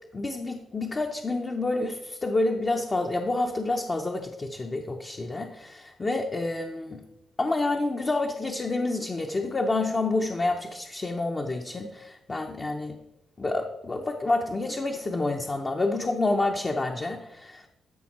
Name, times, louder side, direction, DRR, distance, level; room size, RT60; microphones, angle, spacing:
voice 1, 0.1-7.0 7.4-13.0 13.4-17.7, left 2 dB, 25° left, 3 dB, 0.7 m, -28 dB
13.0 x 5.6 x 4.2 m, 0.89 s
cardioid pair, 130°, 0 cm